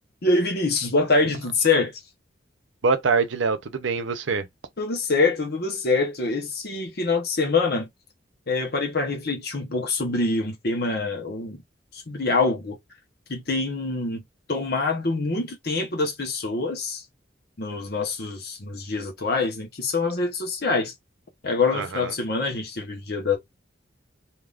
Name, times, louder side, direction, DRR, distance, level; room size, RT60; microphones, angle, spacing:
voice 1, 0.2-2.0 4.8-7.9 8.5-11.6 11.9-12.8 13.3-14.2 14.5-17.0 17.6-20.9 21.4-23.4, left 3 dB, 55° left, 1.0 m, -25 dB
voice 2, 2.8-4.5 21.7-22.1, right 4 dB, 75° right, 0.7 m, -24 dB
3.5 x 2.8 x 2.5 m
head